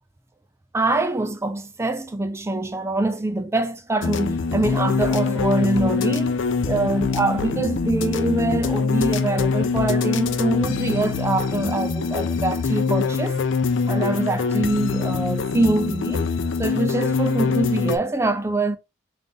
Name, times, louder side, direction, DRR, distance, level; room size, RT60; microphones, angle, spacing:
voice 1, 0.7-13.4 13.9-16.3 16.6-18.8, right 2 dB, 15° right, 0.4 m, -24 dB
sound 1, 4.0-18.0, left 5 dB, 70° left, 0.5 m, -24 dB
3.8 x 2.5 x 3.4 m
head